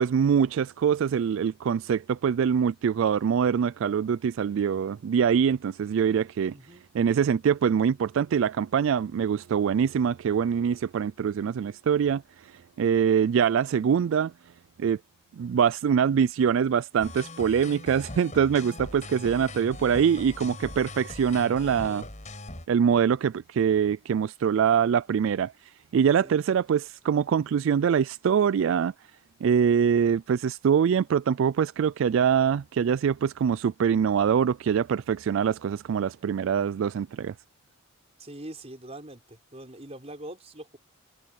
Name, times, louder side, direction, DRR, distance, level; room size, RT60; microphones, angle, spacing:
voice 1, 0.0-6.5 6.9-14.3 14.8-15.0 15.4-22.0 22.7-28.9 29.4-37.3, right 7 dB, 65° right, 0.3 m, -24 dB
sound 1, 17.0-22.7, left 2 dB, 35° left, 5.6 m, -41 dB
voice 2, 21.6-22.1 26.2-26.4 38.2-40.8, right 1 dB, 30° right, 4.6 m, -43 dB
head